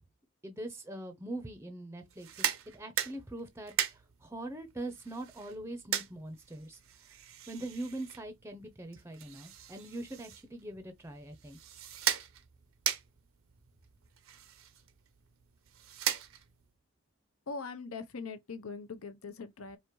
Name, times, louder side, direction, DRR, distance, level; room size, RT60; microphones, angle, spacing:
voice 1, 0.4-2.3 2.7-3.7 4.2-6.8 7.5-11.6, right 1 dB, 10° right, 0.6 m, -42 dB
sound 1, 2.1-16.7, right 10 dB, 70° right, 0.7 m, -39 dB
voice 2, 17.5-19.8, left 4 dB, 80° left, 0.7 m, -41 dB
5.0 x 2.5 x 3.0 m
head